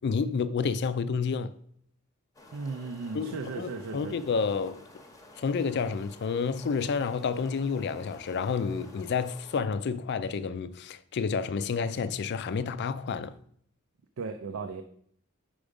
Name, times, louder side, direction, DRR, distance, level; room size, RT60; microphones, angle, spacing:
voice 1, 0.0-1.5 3.1-4.8 5.4-13.4, left 5 dB, 55° left, 0.4 m, -30 dB
sound 1, 2.3-9.6, left 2 dB, 15° left, 0.8 m, -52 dB
voice 2, 2.5-4.2 14.2-14.8, right 4 dB, 80° right, 0.5 m, -36 dB
5.1 x 4.9 x 5.1 m
head